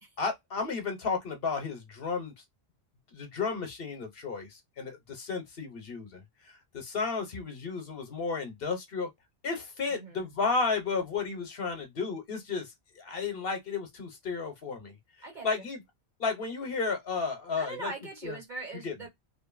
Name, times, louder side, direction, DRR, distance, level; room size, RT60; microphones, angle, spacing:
voice 1, 0.2-2.3 3.1-9.1 9.4-14.9 15.4-15.8 16.2-17.9 18.2-18.4 18.8-18.9, left 4 dB, 60° left, 1.0 m, -33 dB
voice 2, 9.9-10.3 15.2-15.7 17.5-19.1, right 3 dB, 45° right, 1.3 m, -41 dB
2.7 x 2.5 x 2.4 m
omnidirectional pair, 1.1 m